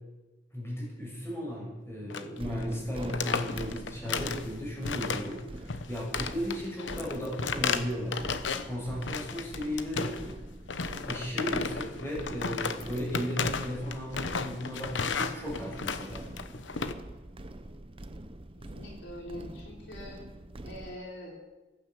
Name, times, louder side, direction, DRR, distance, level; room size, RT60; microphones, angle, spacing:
voice 1, 0.5-8.2 8.6-10.2 11.0-16.3, equal, 15° left, -4 dB, 7.4 m, -35 dB
sound 1, 2.1-2.4 2.6-2.8 3.0-4.5 4.8-5.4 5.7-8.7 9.0-10.3 10.7-16.9, left 5 dB, 85° left, 1.0 m, -34 dB
sound 2, 2.4-21.0, right 1 dB, 30° right, 0.8 m, -44 dB
voice 2, 18.7-20.2 20.6-21.4, left 1 dB, 65° left, -1 dB, 3.6 m, -43 dB
15.5 x 11.5 x 7.9 m, 1.1 s
head